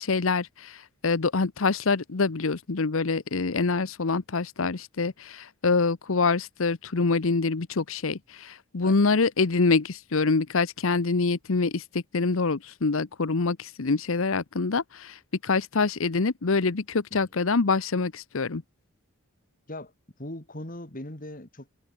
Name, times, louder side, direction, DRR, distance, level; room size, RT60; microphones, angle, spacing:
voice 1, 0.0-18.6, left 4 dB, 75° left, 0.9 m, -25 dB
voice 2, 20.2-21.8, left 1 dB, 40° left, 3.1 m, -39 dB
head